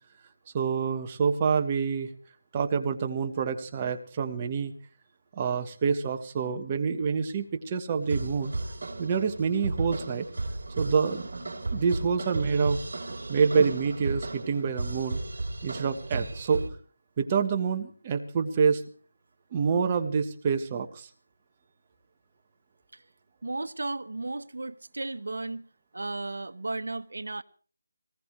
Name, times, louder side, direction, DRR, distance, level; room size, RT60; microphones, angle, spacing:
voice 1, 0.5-2.1 2.5-4.7 5.4-8.5 9.0-10.3 10.8-11.3 11.7-12.8 13.3-15.2 15.6-16.7 17.2-18.8 19.5-21.1, right 5 dB, 20° right, 1.2 m, -27 dB
sound 1, 8.0-16.7, right 2 dB, 55° right, 3.9 m, -34 dB
voice 2, 23.4-25.6 25.9-27.4, right 2 dB, 80° right, 1.1 m, -35 dB
21.5 x 19.0 x 3.2 m
figure-of-eight pair, 170°, 0 cm